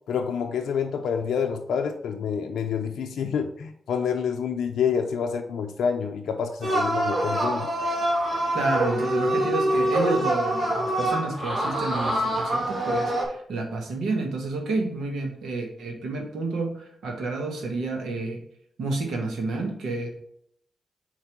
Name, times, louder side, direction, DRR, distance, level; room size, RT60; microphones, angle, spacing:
voice 1, 0.1-7.7, left 7 dB, 85° left, 5 dB, 0.4 m, -27 dB
sound 1, 6.6-13.2, right 1 dB, 55° right, 2.1 m, -25 dB
voice 2, 8.5-18.4 18.8-20.1, right 3 dB, 85° right, 3 dB, 1.3 m, -30 dB
4.7 x 4.5 x 5.8 m, 0.67 s
supercardioid pair, 40°, 0 cm